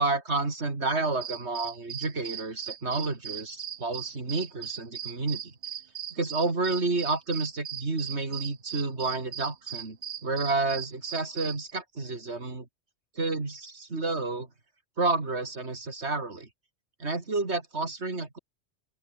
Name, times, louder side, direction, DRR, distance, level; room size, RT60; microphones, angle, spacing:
voice 1, 0.0-5.5 6.1-10.0 10.2-12.7 13.2-14.5 15.0-16.5 17.0-18.4, right 3 dB, 80° right, 3.5 m, -30 dB
sound 1, 1.1-11.7, right 9 dB, 55° right, 0.8 m, -38 dB
open air
omnidirectional pair, 1.1 m